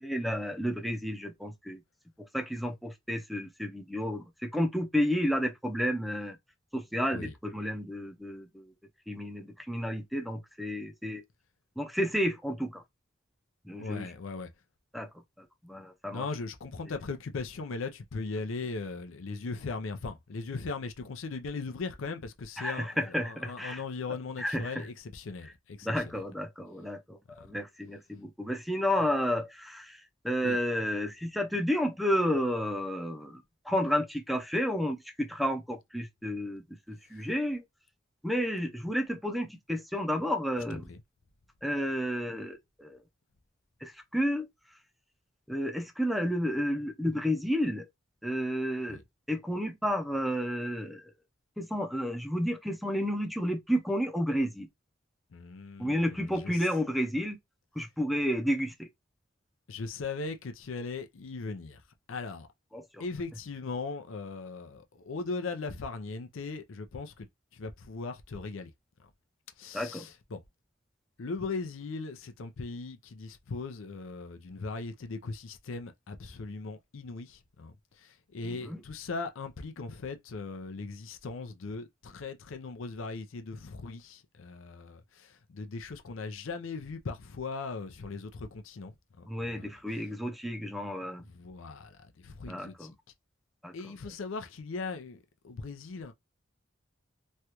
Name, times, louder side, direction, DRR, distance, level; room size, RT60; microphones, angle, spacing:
voice 1, 0.0-1.8 2.3-6.3 6.7-8.6 9.1-11.2 11.8-12.8 13.7-14.1 14.9-15.1 15.6-16.2 22.6-23.8 24.4-24.8 25.8-29.9 30.2-33.4 33.7-36.6 37.1-37.6 38.2-40.8 41.6-43.0 43.8-44.4 45.5-47.9 48.2-49.0 49.3-51.0 51.6-54.7 55.8-57.4 57.8-58.9 62.7-62.8 69.7-70.0 78.4-78.8 89.3-91.2 92.5-92.9 93.6-93.7, equal, ahead, 0.5 m, -31 dB
voice 2, 13.8-14.5 16.1-26.2 27.4-27.5 30.4-30.6 37.1-37.3 40.7-41.0 48.9-49.0 55.3-56.7 59.7-61.8 62.1-62.5 63.0-67.3 67.5-68.7 69.0-69.1 69.6-70.4 71.2-90.1 91.2-93.0 93.7-96.1, left 4 dB, 90° left, 0.5 m, -39 dB
3.2 x 2.3 x 2.9 m
head